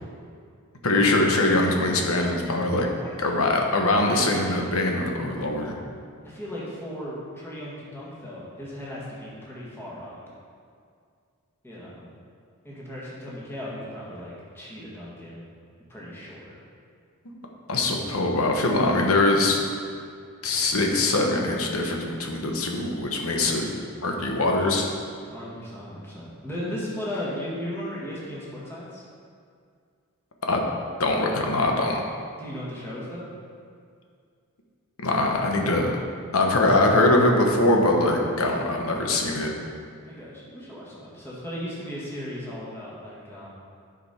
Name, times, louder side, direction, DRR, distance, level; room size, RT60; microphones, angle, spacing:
voice 1, 0.8-2.9 3.2-5.7 17.7-19.6 20.4-23.7 24.0-24.9 30.5-30.6 31.0-32.0 35.0-35.9 36.3-39.5, left 2 dB, 75° left, 1 dB, 1.1 m, -22 dB
voice 2, 4.0-4.6 6.2-10.2 11.6-12.1 12.6-15.4 15.9-16.5 25.3-29.0 32.4-33.3 40.0-43.5, equal, 10° left, -7 dB, 1.8 m, -36 dB
10.0 x 5.2 x 4.3 m, 2.2 s
head